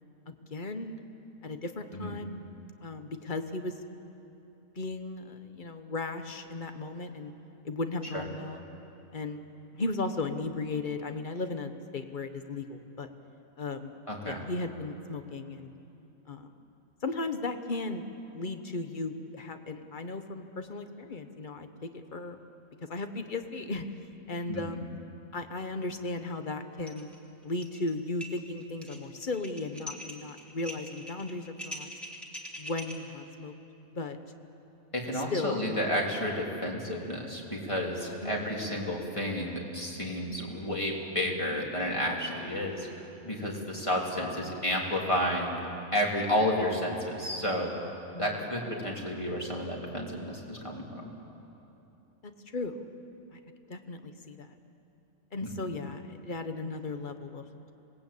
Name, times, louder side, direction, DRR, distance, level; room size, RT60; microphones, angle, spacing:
voice 1, 0.3-1.0 1.4-2.4 2.8-3.7 4.8-7.3 7.6-8.6 9.1-9.5 9.7-13.1 13.6-14.0 14.2-15.7 16.3-16.5 17.0-18.1 18.3-22.4 22.9-23.8 24.3-24.9 25.3-27.1 27.4-31.9 32.6-33.5 33.9-34.2 35.3-35.6 38.2-38.5 44.2-44.6 48.1-48.3 52.5-52.9 53.3-53.4 53.7-54.5 55.3-57.7, left 3 dB, 35° left, 7 dB, 1.4 m, -36 dB
voice 2, 14.1-14.4 24.5-24.8 34.9-45.6 45.9-47.7 48.2-51.1 55.4-55.7, left 1 dB, 20° left, -2 dB, 3.5 m, -31 dB
sound 1, 26.9-27.1 27.4-27.9 28.2-32.9, equal, ahead, 2.7 m, -43 dB
26.5 x 20.0 x 8.6 m, 2.9 s
omnidirectional pair, 1.5 m